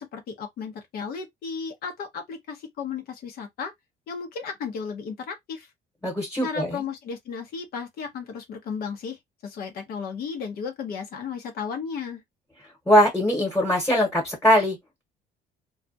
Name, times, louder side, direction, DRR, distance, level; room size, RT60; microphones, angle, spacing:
voice 1, 0.0-3.7 4.1-5.7 6.4-12.2, left 6 dB, 65° left, 0.7 m, -34 dB
voice 2, 6.0-6.8 12.9-15.0, equal, 10° left, 1.0 m, -21 dB
2.3 x 2.1 x 2.6 m
cardioid pair, 110°, 17 cm